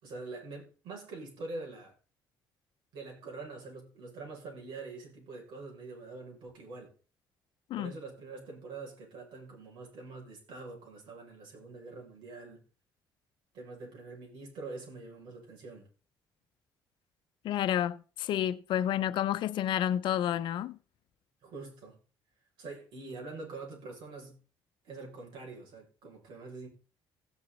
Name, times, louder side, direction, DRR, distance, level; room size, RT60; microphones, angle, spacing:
voice 1, 0.0-1.9 2.9-6.9 7.8-12.6 13.5-15.9 21.4-22.0 22.6-24.4 24.8-26.7, right 3 dB, 80° right, 6.9 m, -45 dB
voice 2, 17.4-20.8, left 11 dB, 70° left, 0.8 m, -30 dB
16.0 x 7.7 x 4.1 m
cardioid pair, 90°, 8 cm